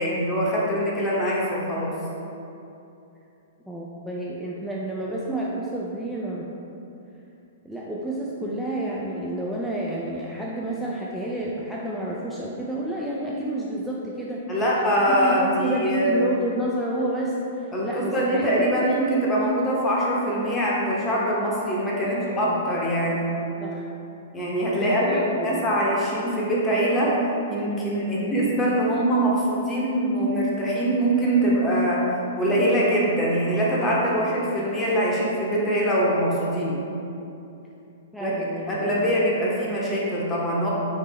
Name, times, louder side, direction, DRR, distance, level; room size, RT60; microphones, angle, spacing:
voice 1, 0.0-1.9 8.4-8.6 14.5-16.2 17.7-23.4 24.3-27.1 27.5-32.0 32.4-36.8 38.2-38.3 38.7-40.7, right 1 dB, 15° left, -5 dB, 0.9 m, -23 dB
voice 2, 3.7-6.4 7.6-14.5 15.1-18.8 22.0-22.6 23.6-23.8 24.7-25.7 28.1-28.4 33.8-34.3 38.1-39.1, right 1 dB, ahead, -6 dB, 0.3 m, -30 dB
4.1 x 3.3 x 3.1 m, 2.8 s
figure-of-eight pair, 110°, 0 cm